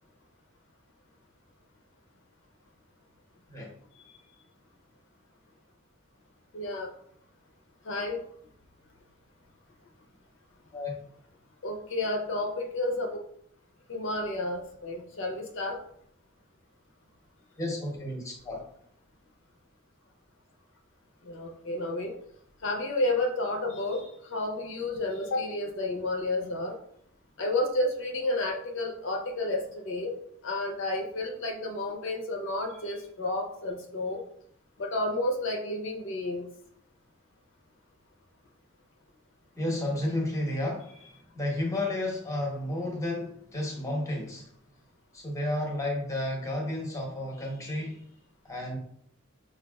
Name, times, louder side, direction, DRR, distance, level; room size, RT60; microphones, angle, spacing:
voice 1, 6.5-6.9 7.8-8.2 11.6-13.2 13.9-15.8 21.2-22.2 22.6-26.8 27.4-30.2 30.4-34.2 34.8-36.5, left 2 dB, 65° left, 1 dB, 0.6 m, -31 dB
voice 2, 17.6-18.6 39.6-40.9 41.4-44.4 45.1-48.0 48.4-48.8, left 1 dB, 15° left, 0 dB, 0.8 m, -32 dB
5.2 x 2.4 x 2.2 m, 0.66 s
head